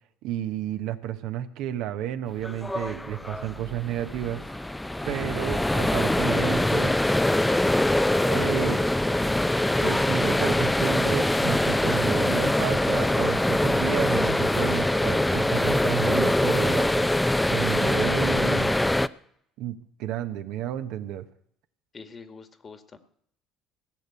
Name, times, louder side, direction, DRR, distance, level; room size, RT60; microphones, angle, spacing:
voice 1, 0.2-4.7 5.1-6.9 8.2-8.8 9.8-17.1 17.5-18.7 19.6-21.2, right 11 dB, 70° right, 9 dB, 1.0 m, -31 dB
sound 1, 2.4-19.1, left 1 dB, 10° left, 0.6 m, -23 dB
voice 2, 21.9-23.0, left 4 dB, 35° left, 9 dB, 1.8 m, -45 dB
17.0 x 6.7 x 8.6 m, 0.68 s
hypercardioid pair, 65°, 0 cm